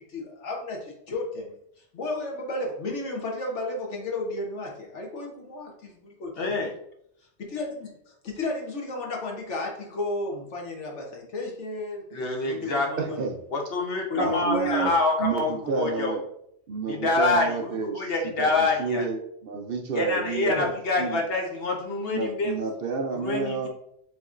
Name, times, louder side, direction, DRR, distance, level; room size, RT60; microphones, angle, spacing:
voice 1, 0.1-1.6 1.9-6.6 7.4-12.1 12.4-13.2 14.1-15.0 20.5-20.7 23.3-23.7, left 2 dB, 85° left, 0 dB, 1.4 m, -33 dB
voice 2, 6.4-6.7 12.1-12.9 13.5-16.1 16.8-19.1 19.9-22.8 23.1-23.7, left 3 dB, 60° left, 1 dB, 1.1 m, -26 dB
voice 3, 13.0-13.4 14.1-14.9 15.2-16.2 16.7-18.0 18.4-20.7 21.0-21.2 22.1-23.7, right 5 dB, 60° right, 2 dB, 0.8 m, -30 dB
6.9 x 2.9 x 2.5 m, 0.73 s
omnidirectional pair, 1.2 m